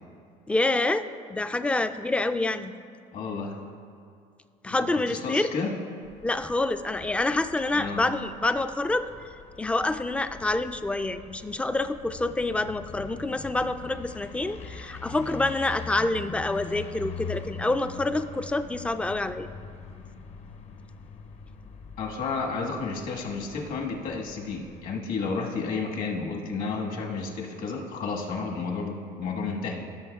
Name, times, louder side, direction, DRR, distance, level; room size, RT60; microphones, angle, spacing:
voice 1, 0.5-2.7 4.6-5.5 6.2-9.1 9.6-19.5, left 2 dB, 10° left, 10 dB, 0.3 m, -27 dB
voice 2, 3.1-3.6 4.7-5.8 7.7-8.0 22.0-29.8, left 4 dB, 65° left, -1 dB, 1.6 m, -32 dB
sound 1, 6.0-25.0, left 5 dB, 45° left, 0.7 m, -43 dB
15.5 x 6.7 x 2.4 m, 2.3 s
cardioid pair, 105°, 15 cm